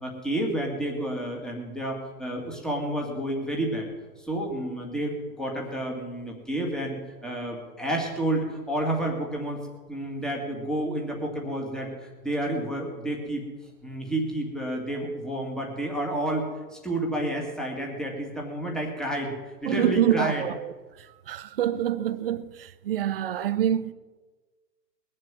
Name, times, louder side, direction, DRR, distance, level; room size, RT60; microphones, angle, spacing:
voice 1, 0.0-3.9 4.2-7.0 7.2-9.6 9.9-13.4 13.8-19.3 19.6-20.4, right 1 dB, ahead, 2.0 m, -30 dB
voice 2, 19.7-20.7 21.3-23.9, right 10 dB, 35° right, 0.7 m, -26 dB
21.0 x 7.7 x 7.6 m
hypercardioid pair, 150°, 50 cm